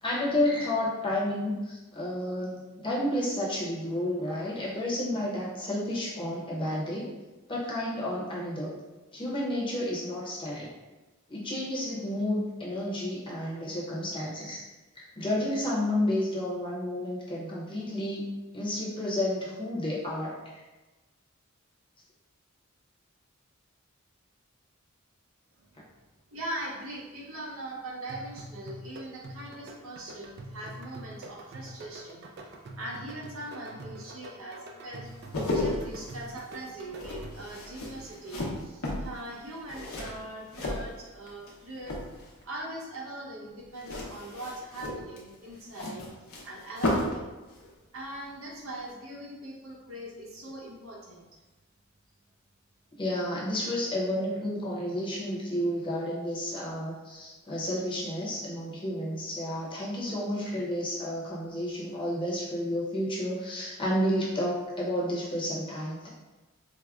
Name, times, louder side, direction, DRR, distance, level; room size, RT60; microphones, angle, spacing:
voice 1, 0.0-7.0 7.5-8.7 9.1-10.7 11.3-14.6 15.2-18.3 18.5-20.4 53.0-66.1, left 1 dB, 25° left, -5 dB, 0.7 m, -31 dB
voice 2, 26.3-32.3 32.8-35.1 35.5-42.0 42.4-46.1 46.4-47.3 47.9-51.3, right 1 dB, 75° right, -2 dB, 0.8 m, -41 dB
sound 1, 28.1-37.6, right 2 dB, 50° right, 0.3 m, -45 dB
sound 2, 35.1-41.5 41.8-42.4 43.8-47.2 47.5-47.7, left 1 dB, 90° left, 0.8 m, -34 dB
4.6 x 2.1 x 2.3 m, 1.1 s
head